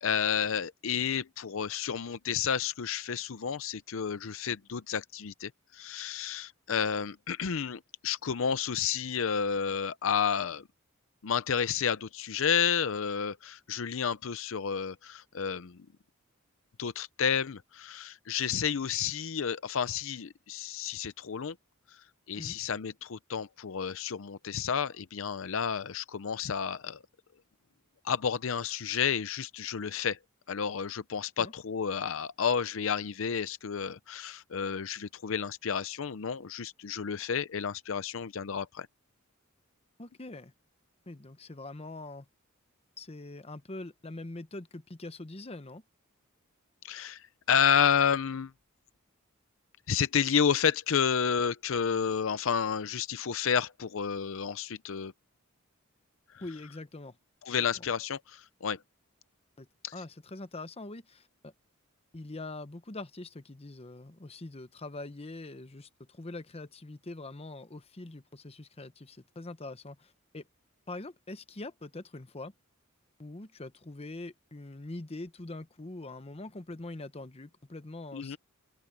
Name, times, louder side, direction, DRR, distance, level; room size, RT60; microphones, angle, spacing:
voice 1, 0.0-10.6 11.2-15.8 16.8-21.5 22.3-27.0 28.0-30.2 30.5-38.9 46.8-48.5 49.9-55.1 57.4-58.8 59.8-59.9 78.1-78.4, left 7 dB, 65° left, 0.6 m, -31 dB
voice 2, 40.0-40.5 41.1-42.3 43.0-45.8 56.4-57.2 57.7-57.9 59.6-59.7 59.9-61.5 62.1-70.5 70.9-72.5 73.2-78.4, left 2 dB, 30° left, 1.0 m, -43 dB
open air
head